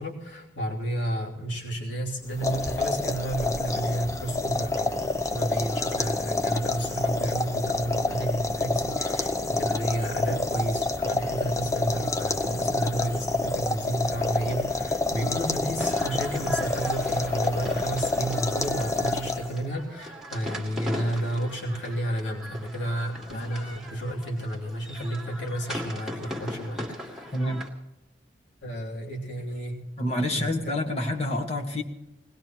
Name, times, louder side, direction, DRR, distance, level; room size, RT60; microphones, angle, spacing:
voice 1, 0.0-27.3 28.6-29.8 30.3-30.5, right 1 dB, 75° left, -2 dB, 3.2 m, -31 dB
sound 1, 2.3-19.7, left 2 dB, 15° left, 0.7 m, -28 dB
sound 2, 15.8-27.7, equal, 5° right, 2.0 m, -39 dB
voice 2, 27.3-27.6 30.0-31.8, left 1 dB, 35° left, 1 dB, 1.6 m, -28 dB
21.0 x 19.0 x 3.1 m, 0.95 s
head